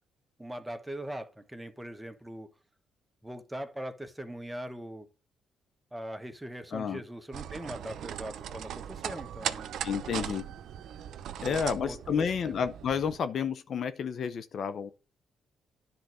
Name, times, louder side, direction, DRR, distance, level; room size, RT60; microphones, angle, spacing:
voice 1, 0.4-2.5 3.2-5.1 5.9-9.7 11.4-12.6, right 1 dB, 10° right, 1.3 m, -41 dB
voice 2, 6.7-7.0 9.8-10.5 11.4-14.9, left 7 dB, 60° left, 0.7 m, -31 dB
sound 1, 7.3-13.2, right 10 dB, 75° right, 0.7 m, -39 dB
10.5 x 4.1 x 6.3 m
cardioid pair, 90°, 0 cm